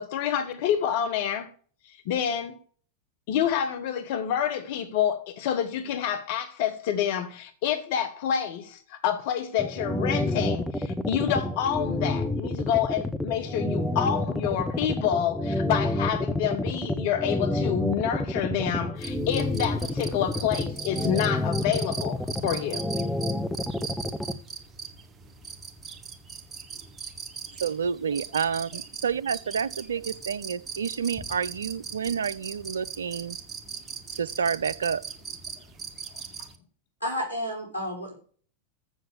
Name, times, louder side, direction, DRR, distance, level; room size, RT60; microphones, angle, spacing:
voice 1, 0.0-1.5 1.8-2.6 3.3-22.9, left 9 dB, 50° left, 1.0 m, -28 dB
sound 1, 9.6-24.3, left 2 dB, 5° left, 0.7 m, -28 dB
sound 2, 19.0-36.6, right 6 dB, 20° right, 1.4 m, -40 dB
voice 2, 27.6-33.4 34.1-35.0, right 7 dB, 70° right, 0.5 m, -29 dB
voice 3, 37.0-38.1, equal, 85° left, 5.0 m, -31 dB
7.6 x 7.3 x 6.7 m
figure-of-eight pair, 90°, 0 cm